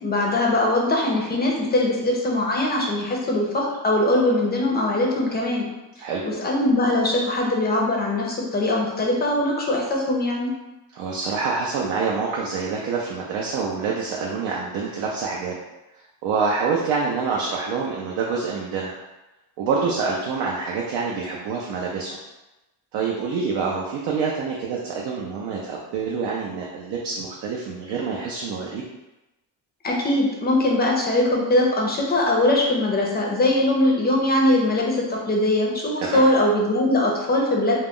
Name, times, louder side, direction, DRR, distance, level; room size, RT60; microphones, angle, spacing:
voice 1, 0.0-5.7 6.2-10.5 29.8-37.8, left 1 dB, 25° left, -2 dB, 0.5 m, -21 dB
voice 2, 10.9-15.6 16.2-19.0 19.6-22.2 22.9-28.8 36.0-36.2, right 5 dB, 70° right, -3 dB, 0.5 m, -26 dB
2.3 x 2.0 x 3.5 m, 1.0 s
cardioid pair, 135°, 43 cm